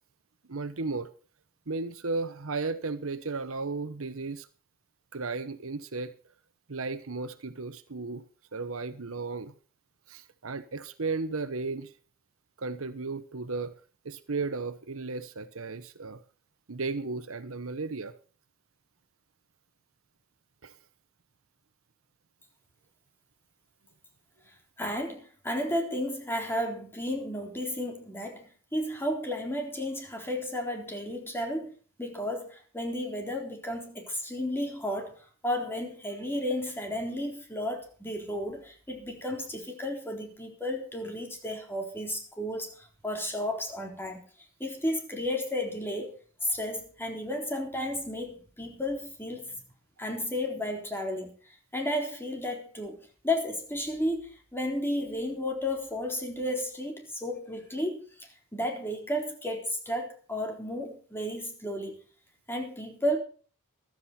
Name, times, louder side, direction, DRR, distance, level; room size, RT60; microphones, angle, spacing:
voice 1, 0.5-1.1 1.7-4.5 5.1-6.1 6.7-8.2 8.5-9.5 10.1-11.9 12.6-13.7 14.0-16.2 16.7-18.1 20.6-20.7, right 3 dB, 70° right, 1.0 m, -34 dB
voice 2, 24.8-31.7 32.0-44.2 44.6-46.1 46.4-49.6 50.0-62.0 62.5-63.2, left 1 dB, 10° left, 3.9 m, -33 dB
15.0 x 13.0 x 4.3 m
head